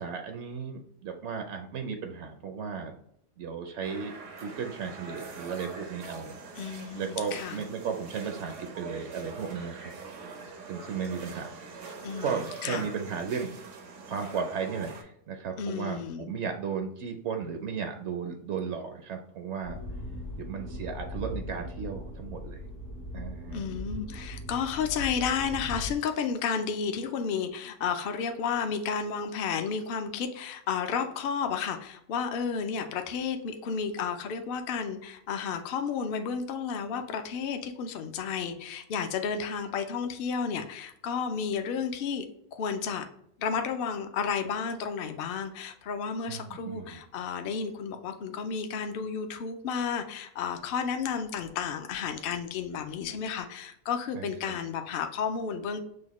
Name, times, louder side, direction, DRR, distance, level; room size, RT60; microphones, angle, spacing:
voice 1, 0.0-2.9 3.4-4.1 4.4-6.4 6.9-9.9 10.7-11.9 12.2-13.6 14.1-19.8 20.4-22.6 23.1-23.7 46.3-47.0 54.1-54.6, right 6 dB, 70° right, 5 dB, 0.8 m, -35 dB
sound 1, 3.8-15.0, right 4 dB, 85° right, 1.2 m, -44 dB
voice 2, 6.6-7.6 12.0-12.8 15.6-16.3 23.5-42.3 42.5-43.1 43.4-55.8, left 6 dB, 60° left, 6 dB, 0.7 m, -32 dB
sound 2, 19.6-25.9, left 1 dB, 80° left, 1.8 m, -39 dB
6.3 x 2.2 x 3.0 m, 0.73 s
omnidirectional pair, 1.3 m